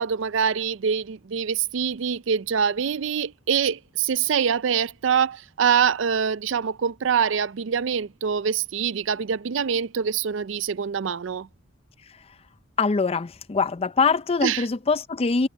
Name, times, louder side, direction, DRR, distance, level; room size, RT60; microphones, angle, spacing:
voice 1, 0.0-11.5 14.4-14.6, right 7 dB, 70° right, 0.5 m, -24 dB
voice 2, 12.8-15.5, left 4 dB, 30° left, 0.5 m, -23 dB
head